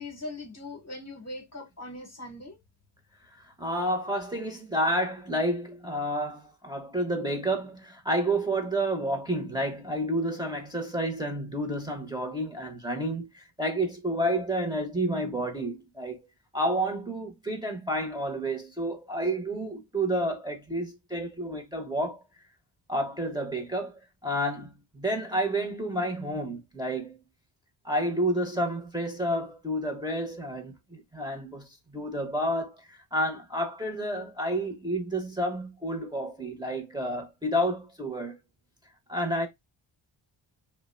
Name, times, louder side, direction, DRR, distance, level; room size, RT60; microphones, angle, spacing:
voice 1, 0.0-2.6, left 2 dB, 30° left, 1.0 m, -40 dB
voice 2, 3.4-16.2 16.5-22.2 22.9-27.2 27.8-38.4 39.1-39.5, right 1 dB, 10° right, 0.9 m, -30 dB
2.6 x 2.2 x 2.5 m
cardioid pair, 60°, 49 cm